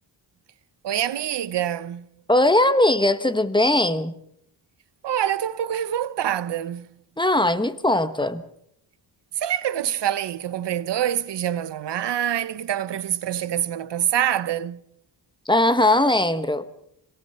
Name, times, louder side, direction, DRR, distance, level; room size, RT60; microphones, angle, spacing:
voice 1, 0.8-2.0 5.0-6.9 9.4-14.8, right 10 dB, 70° right, 0.9 m, -25 dB
voice 2, 2.3-4.1 7.2-8.4 15.5-16.6, left 1 dB, 10° left, 1.2 m, -19 dB
26.0 x 18.0 x 5.7 m
cardioid pair, 95°, 44 cm